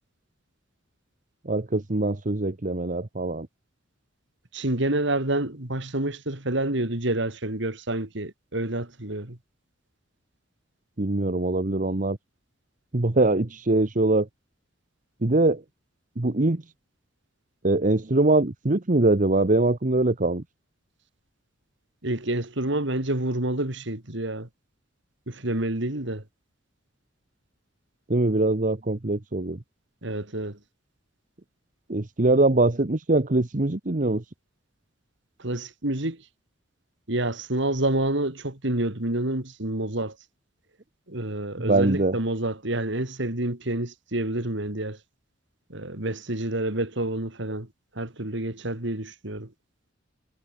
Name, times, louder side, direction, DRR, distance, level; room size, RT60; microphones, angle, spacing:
voice 1, 1.4-3.5 11.0-12.2 12.9-14.3 15.2-15.6 16.2-16.6 17.6-20.4 28.1-29.6 31.9-34.2 41.6-42.1, right 2 dB, 40° right, 1.1 m, -23 dB
voice 2, 4.5-9.4 22.0-24.5 25.3-26.2 30.0-30.6 35.4-36.2 37.1-40.1 41.1-45.0 45.7-47.7 47.9-49.5, right 1 dB, 65° right, 3.3 m, -28 dB
head